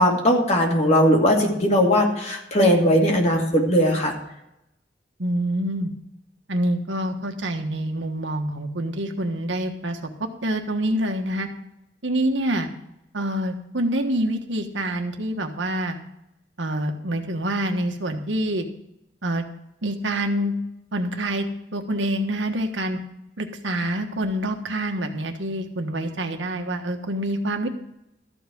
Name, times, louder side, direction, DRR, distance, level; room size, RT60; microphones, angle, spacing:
voice 1, 0.0-4.1, equal, 40° left, 0 dB, 2.4 m, -19 dB
voice 2, 5.2-5.9 6.5-10.0 10.4-11.5 12.0-12.7 13.1-16.0 16.6-18.7 19.2-19.4 19.8-20.5 20.9-21.5 21.7-23.0 23.4-27.7, right 1 dB, 90° right, 5 dB, 1.4 m, -26 dB
13.5 x 5.5 x 7.7 m, 0.82 s
head